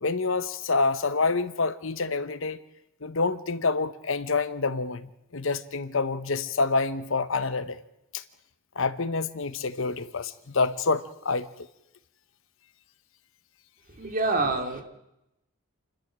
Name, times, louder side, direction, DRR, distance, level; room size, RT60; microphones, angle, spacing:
voice 1, 0.0-2.6 3.0-7.8 8.1-8.2 8.7-11.5, left 4 dB, 65° left, 13 dB, 1.0 m, -27 dB
voice 2, 14.0-14.8, right 3 dB, 40° right, 5 dB, 2.5 m, -26 dB
28.5 x 12.5 x 7.5 m, 0.87 s
head